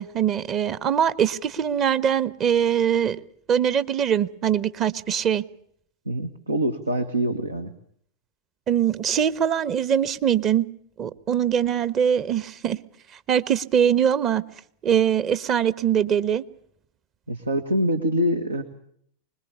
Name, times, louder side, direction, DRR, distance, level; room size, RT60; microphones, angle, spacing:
voice 1, 0.0-3.2 3.5-5.4 8.7-10.7 11.0-12.8 13.3-14.4 14.8-16.4, right 8 dB, 30° right, 1.2 m, -22 dB
voice 2, 6.0-7.7 17.3-18.6, equal, 80° right, 1.6 m, -25 dB
25.0 x 21.0 x 7.0 m
figure-of-eight pair, 90°, 0 cm